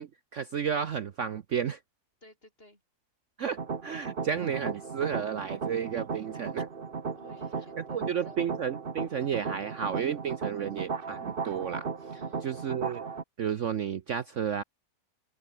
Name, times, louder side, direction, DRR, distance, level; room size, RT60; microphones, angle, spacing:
voice 1, 0.0-1.8 3.4-6.7 7.9-11.9 12.4-13.1 13.4-14.6, right 8 dB, 55° right, 1.1 m, -32 dB
voice 2, 2.2-2.8 7.1-8.4 12.1-12.6, left 1 dB, 35° left, 7.5 m, -55 dB
sound 1, 3.6-13.2, right 5 dB, 35° right, 1.4 m, -36 dB
omnidirectional pair, 1.7 m